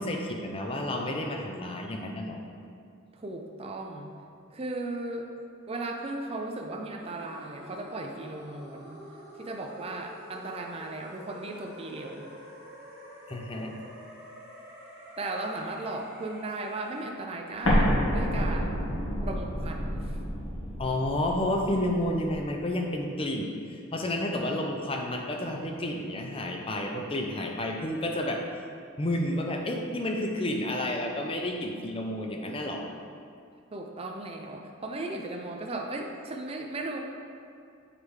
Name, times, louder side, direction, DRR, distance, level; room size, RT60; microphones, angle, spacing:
voice 1, 0.0-2.4 13.3-13.7 20.8-28.4 29.0-32.9, left 1 dB, 25° left, 2 dB, 0.5 m, -30 dB
voice 2, 3.1-4.1 4.5-5.3 5.7-9.0 9.4-12.3 15.2-18.8 19.2-20.2 33.7-37.0, right 2 dB, 25° right, 2 dB, 0.4 m, -36 dB
sound 1, 7.0-17.1, equal, 10° right, 1.2 m, -48 dB
Explosion, 17.6-22.4, equal, 80° left, 1.4 m, -29 dB
7.4 x 4.6 x 3.3 m, 2.4 s
head